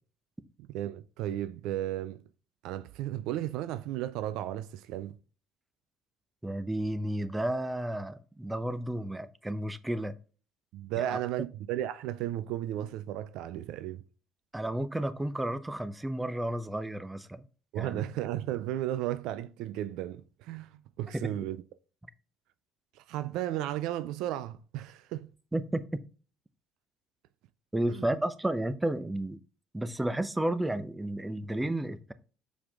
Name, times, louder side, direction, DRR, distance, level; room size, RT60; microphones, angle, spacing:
voice 1, 0.7-2.2 2.6-5.2 10.7-14.0 17.7-21.6 23.0-25.3 27.9-28.1, right 13 dB, 75° right, 0.4 m, -34 dB
voice 2, 6.4-10.1 11.0-11.2 14.5-17.4 17.8-18.0 21.1-21.3 25.5-26.0 27.7-29.4 29.7-32.1, right 1 dB, 10° right, 0.8 m, -32 dB
7.1 x 4.8 x 3.6 m
hypercardioid pair, 70°, 0 cm